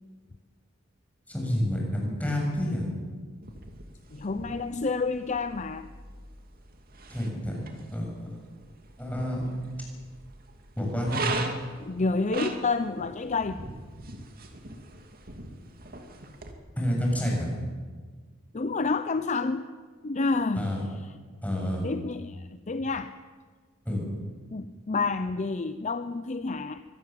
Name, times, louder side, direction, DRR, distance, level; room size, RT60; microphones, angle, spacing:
voice 1, 1.3-2.8 7.1-7.6 7.9-8.3 9.0-9.5 10.8-11.4 16.8-17.5 20.6-20.8 21.4-21.8 23.9-24.0, equal, 5° left, -2 dB, 7.0 m, -29 dB
sound 1, 3.4-16.5, right 2 dB, 45° right, 2.5 m, -40 dB
voice 2, 4.1-5.9 11.8-13.6 18.5-19.7 20.0-20.7 21.8-23.1 24.5-26.8, left 3 dB, 35° left, 11 dB, 0.6 m, -29 dB
24.0 x 17.5 x 7.7 m, 1.5 s
head